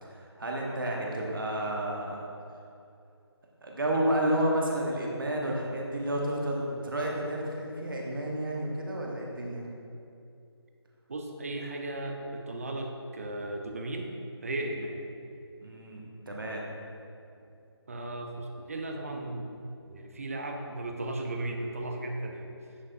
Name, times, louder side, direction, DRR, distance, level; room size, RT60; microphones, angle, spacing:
voice 1, 0.0-2.2 3.6-9.7 15.6-16.7, right 1 dB, 50° right, -2 dB, 1.2 m, -31 dB
voice 2, 11.1-14.1 14.4-15.0 17.9-19.6 19.9-22.5, right 2 dB, 35° right, 3 dB, 0.6 m, -36 dB
9.5 x 5.4 x 2.6 m, 2.6 s
figure-of-eight pair, 155°, 14 cm